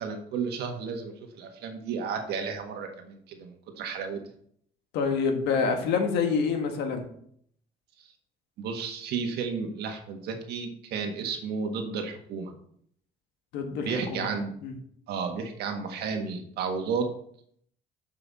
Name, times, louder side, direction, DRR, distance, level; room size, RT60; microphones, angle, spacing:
voice 1, 0.0-4.2 8.6-12.5 13.9-14.5 15.1-17.1, right 5 dB, 75° right, 4 dB, 1.5 m, -32 dB
voice 2, 4.9-7.1 13.5-14.3 14.6-14.7, left 5 dB, 85° left, 5 dB, 1.5 m, -27 dB
7.5 x 5.5 x 4.1 m, 0.65 s
cardioid pair, 110°, 17 cm